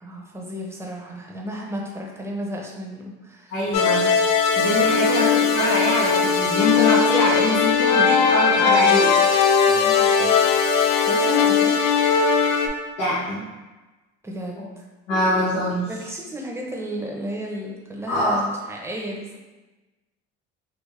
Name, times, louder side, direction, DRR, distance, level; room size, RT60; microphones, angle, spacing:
voice 1, 0.0-3.5 8.6-9.2 9.7-10.3 10.7-11.8 14.2-14.8 15.9-19.4, equal, 10° right, -1 dB, 0.7 m, -33 dB
voice 2, 3.5-4.1 4.5-9.4 13.0-13.4 15.1-15.9 18.1-18.4, left 1 dB, 90° left, -10 dB, 1.0 m, -24 dB
sound 1, 3.7-12.7, left 6 dB, 65° left, 0.5 m, -19 dB
3.8 x 2.3 x 3.2 m, 1.2 s
supercardioid pair, 90°, 29 cm